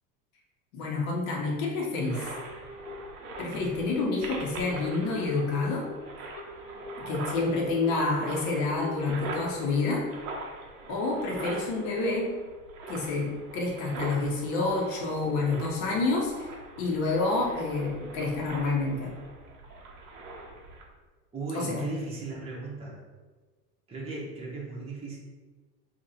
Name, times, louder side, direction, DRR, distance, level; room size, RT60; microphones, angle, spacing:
voice 1, 0.7-2.3 3.4-5.8 7.0-10.0 10.9-12.3 12.9-16.5 16.8-19.1 21.5-21.8, left 3 dB, 55° left, -1 dB, 1.1 m, -28 dB
sound 1, 2.0-20.9, right 2 dB, 60° right, 0.9 m, -42 dB
Telephone, 2.4-2.9 3.4-3.9 4.4-4.9 5.4-5.9 6.4-6.9 7.4-7.9 8.4-8.9 9.4-9.9, left 1 dB, 20° left, 0.3 m, -46 dB
voice 2, 21.3-23.0 23.9-25.2, right 3 dB, 10° right, -5 dB, 0.9 m, -36 dB
2.9 x 2.8 x 4.1 m, 1.4 s
figure-of-eight pair, 70°, 48 cm